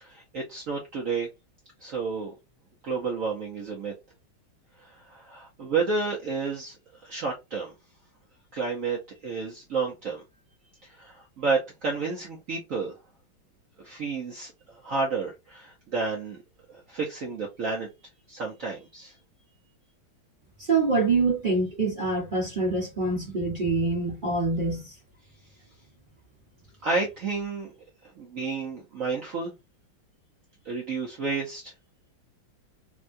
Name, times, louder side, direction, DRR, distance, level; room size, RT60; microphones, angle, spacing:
voice 1, 0.0-1.3 1.8-2.3 2.8-3.9 4.8-6.8 7.0-7.7 8.5-10.2 10.8-12.9 13.8-16.4 16.7-17.9 18.3-19.1 26.8-27.7 28.2-29.5 30.6-31.7, right 4 dB, 60° right, 0.8 m, -31 dB
voice 2, 20.7-24.9, right 3 dB, 30° right, 1.1 m, -25 dB
3.5 x 2.2 x 2.5 m
omnidirectional pair, 2.2 m